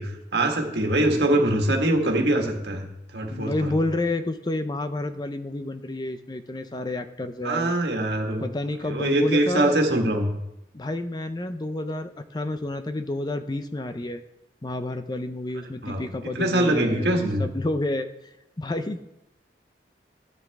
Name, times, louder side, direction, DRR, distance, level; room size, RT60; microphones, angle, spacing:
voice 1, 0.0-2.9 3.1-3.7 7.4-8.5 8.8-10.3 15.8-16.0 16.4-17.5, right 1 dB, 70° right, 2 dB, 1.8 m, -23 dB
voice 2, 3.3-7.7 8.4-9.8 10.7-14.2 14.6-18.1 18.6-19.0, left 2 dB, 25° left, 10 dB, 0.5 m, -30 dB
13.5 x 9.2 x 3.6 m, 0.88 s
head